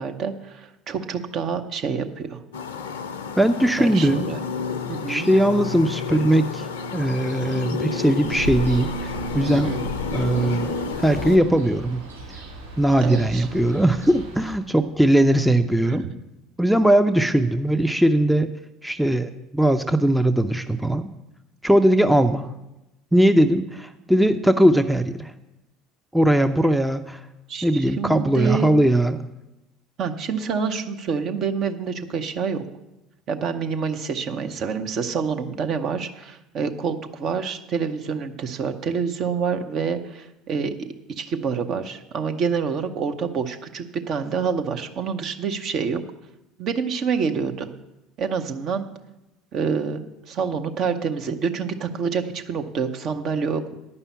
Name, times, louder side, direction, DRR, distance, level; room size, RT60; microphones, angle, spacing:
voice 1, 0.0-2.4 3.8-4.4 4.9-5.3 9.6-9.8 13.0-13.5 15.9-16.1 27.5-28.7 30.0-32.6 33.3-40.9 41.2-46.0 46.6-47.7 48.2-48.9 49.5-53.7, right 6 dB, 45° right, 6 dB, 0.8 m, -27 dB
sound 1, 2.5-11.4, left 4 dB, 70° left, 0.5 m, -30 dB
voice 2, 3.4-4.3 5.1-6.7 6.9-9.8 10.1-10.7 11.0-12.0 12.8-16.0 16.6-18.5 18.8-21.1 21.6-22.5 23.1-25.3 26.1-27.2 27.6-29.3, right 1 dB, ahead, 8 dB, 0.5 m, -19 dB
Ocean, 8.2-14.5, right 1 dB, 80° right, 2.9 m, -36 dB
9.7 x 5.6 x 8.1 m, 0.94 s
figure-of-eight pair, 65°, 0 cm